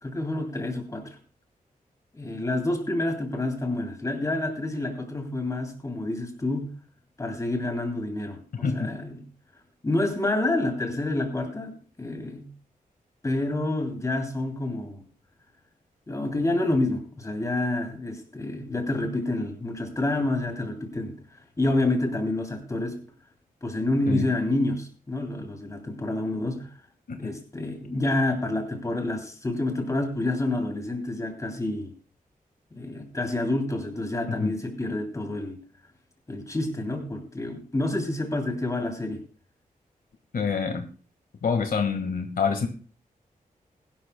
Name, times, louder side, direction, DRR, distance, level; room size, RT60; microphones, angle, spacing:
voice 1, 0.0-1.1 2.1-6.8 7.2-9.3 9.8-12.5 13.2-15.0 16.1-21.2 21.6-23.0 23.6-26.7 27.2-31.9 32.7-35.6 36.3-39.2, left 2 dB, 20° left, 4 dB, 2.7 m, -28 dB
voice 2, 8.5-8.9 24.1-24.3 27.1-27.3 34.4-34.5 40.3-40.8 41.4-42.7, left 5 dB, 75° left, 6 dB, 1.7 m, -26 dB
21.0 x 11.5 x 2.2 m, 0.38 s
wide cardioid pair, 160°, 15 cm